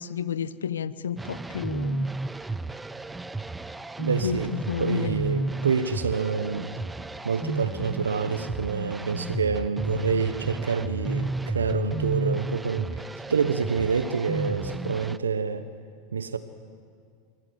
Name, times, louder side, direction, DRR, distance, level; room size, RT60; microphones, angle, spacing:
voice 1, 0.0-2.1 4.2-4.4 4.7-5.2, left 8 dB, 80° left, 17 dB, 0.8 m, -31 dB
sound 1, 1.2-15.2, right 3 dB, 10° right, 0.7 m, -32 dB
voice 2, 4.0-6.7 7.2-13.0 13.3-15.7 16.1-16.4, right 5 dB, 85° right, 11 dB, 1.0 m, -27 dB
24.5 x 19.0 x 8.1 m, 2.1 s
hypercardioid pair, 90°, 0 cm